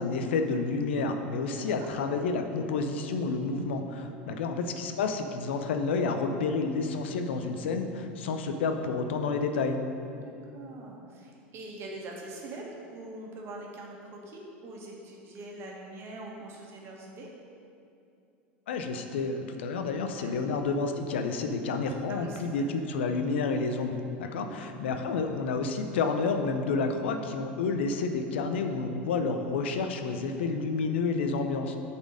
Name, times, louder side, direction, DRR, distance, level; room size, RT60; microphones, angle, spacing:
voice 1, 0.0-9.8 18.7-31.8, left 4 dB, 80° left, 6 dB, 0.6 m, -30 dB
voice 2, 1.5-1.9 4.0-4.4 10.1-17.3 20.1-20.3 22.1-22.6 24.2-24.6, right 2 dB, 45° right, -1 dB, 1.6 m, -44 dB
7.9 x 4.3 x 5.1 m, 2.6 s
hypercardioid pair, 90°, 6 cm